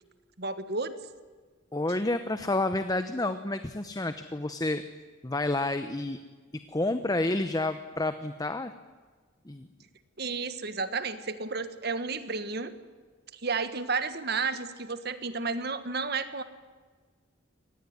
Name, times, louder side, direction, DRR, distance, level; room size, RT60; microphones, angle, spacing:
voice 1, 0.4-0.9 10.2-12.7 13.3-16.4, right 4 dB, 55° right, 11 dB, 1.6 m, -32 dB
voice 2, 1.7-4.8 5.2-6.2 6.5-8.7 9.5-9.7, left 2 dB, 20° left, 10 dB, 0.9 m, -29 dB
25.0 x 19.0 x 9.6 m, 1.5 s
head